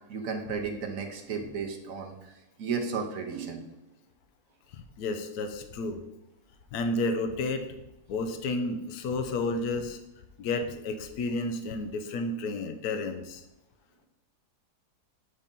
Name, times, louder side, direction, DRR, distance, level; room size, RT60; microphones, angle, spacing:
voice 1, 0.1-3.6, right 5 dB, 60° right, 3 dB, 1.2 m, -34 dB
voice 2, 4.7-6.0 6.7-7.7 8.1-10.0 10.4-13.4, left 2 dB, 75° left, 7 dB, 1.2 m, -31 dB
8.3 x 2.8 x 5.2 m, 0.96 s
omnidirectional pair, 1.7 m